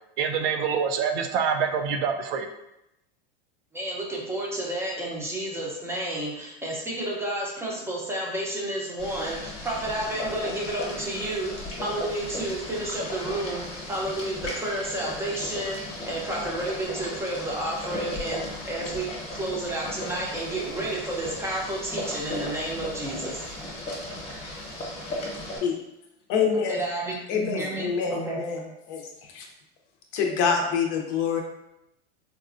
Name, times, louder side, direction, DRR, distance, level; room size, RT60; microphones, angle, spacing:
voice 1, 0.2-2.5, right 6 dB, 65° right, 5 dB, 0.5 m, -26 dB
voice 2, 3.7-11.5 11.8-15.8 16.0-23.4 26.7-28.4, right 1 dB, 10° right, -3 dB, 0.6 m, -31 dB
Boiling, 9.0-25.6, left 1 dB, 20° left, 1.0 m, -36 dB
voice 3, 26.3-26.9 27.3-28.6 28.9-29.0 29.3-29.4 30.1-31.4, left 6 dB, 50° left, 2 dB, 0.7 m, -25 dB
4.1 x 2.2 x 2.5 m, 0.85 s
supercardioid pair, 135°, 31 cm